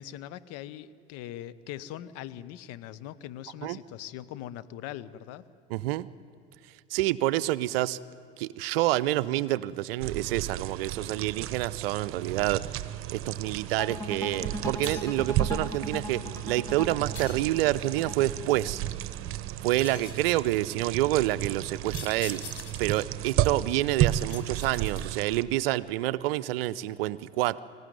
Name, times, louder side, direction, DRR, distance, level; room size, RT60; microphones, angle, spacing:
voice 1, 0.0-5.4, left 12 dB, 50° left, 15 dB, 1.1 m, -41 dB
voice 2, 5.7-6.1 6.9-8.0 8.4-12.8 13.1-18.8 19.6-22.4 22.8-27.6, right 15 dB, 60° right, 19 dB, 0.7 m, -28 dB
sound 1, 10.0-25.4, right 13 dB, 40° right, 1.1 m, -33 dB
sound 2, 13.8-18.9, left 1 dB, 10° left, 2.6 m, -38 dB
sound 3, 14.8-15.3 17.1-17.9 19.8-20.3 21.9-23.0 24.3-25.3, left 7 dB, 75° left, 2.2 m, -44 dB
25.0 x 16.0 x 9.4 m, 2.4 s
figure-of-eight pair, 80°, 33 cm